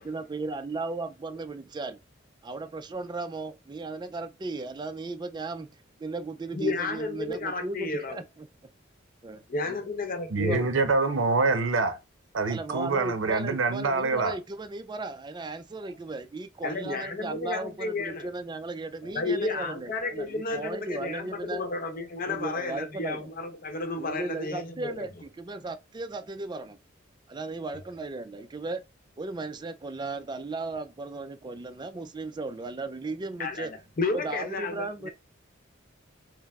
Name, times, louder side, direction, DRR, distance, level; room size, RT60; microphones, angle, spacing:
voice 1, 0.0-2.0 2.4-5.7 6.0-8.2 9.2-9.8 10.4-10.7 12.5-21.7 22.3-23.3 24.0-25.1 25.4-26.8 27.3-28.8 29.2-33.7 34.1-35.1, right 3 dB, 20° right, 0.4 m, -36 dB
voice 2, 6.5-8.2 9.5-10.7 16.6-18.3 19.0-25.1 33.4-35.1, left 3 dB, 45° left, 0.8 m, -32 dB
voice 3, 10.3-12.0 12.3-14.4, right 3 dB, 70° right, 0.7 m, -25 dB
4.6 x 2.0 x 3.5 m
head